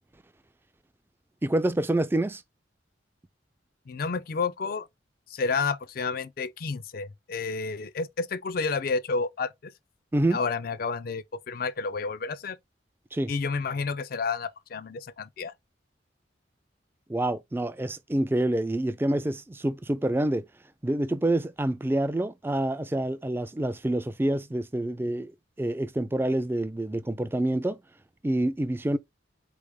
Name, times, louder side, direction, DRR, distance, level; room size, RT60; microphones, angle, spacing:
voice 1, 1.4-2.4 10.1-10.4 13.1-13.3 17.1-20.5 20.8-25.3 25.6-27.8 28.2-29.0, right 1 dB, 10° right, 0.3 m, -27 dB
voice 2, 3.9-4.9 5.3-9.7 10.3-12.6 13.3-15.5, left 4 dB, 55° left, 0.4 m, -30 dB
4.3 x 3.3 x 3.4 m
head